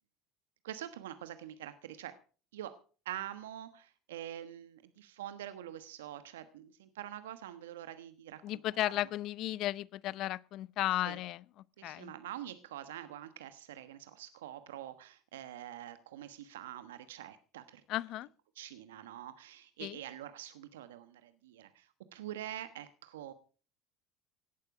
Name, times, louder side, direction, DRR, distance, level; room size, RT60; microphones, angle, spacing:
voice 1, 0.6-2.1 2.5-2.7 3.0-8.4 11.0-11.2 11.8-17.8 18.6-23.3, right 12 dB, 80° right, 1.2 m, -45 dB
voice 2, 8.4-11.4 11.8-12.1 17.9-18.3 19.8-20.0, left 15 dB, 60° left, 0.6 m, -34 dB
17.5 x 11.5 x 4.9 m
hypercardioid pair, 70°, 0 cm